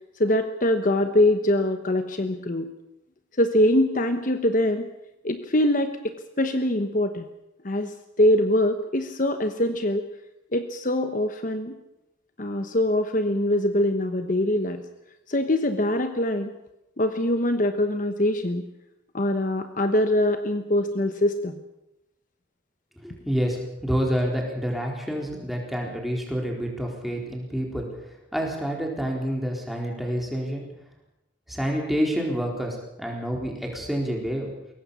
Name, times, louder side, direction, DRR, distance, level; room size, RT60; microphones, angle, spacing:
voice 1, 0.2-2.7 3.4-4.9 5.2-7.2 7.6-10.0 10.5-11.8 12.4-14.8 15.3-16.5 17.0-18.6 19.1-21.6, left 1 dB, 40° left, 8 dB, 1.0 m, -23 dB
voice 2, 23.0-27.9 28.3-30.6 31.5-34.5, equal, ahead, 0 dB, 4.1 m, -28 dB
22.5 x 17.5 x 7.0 m, 0.90 s
head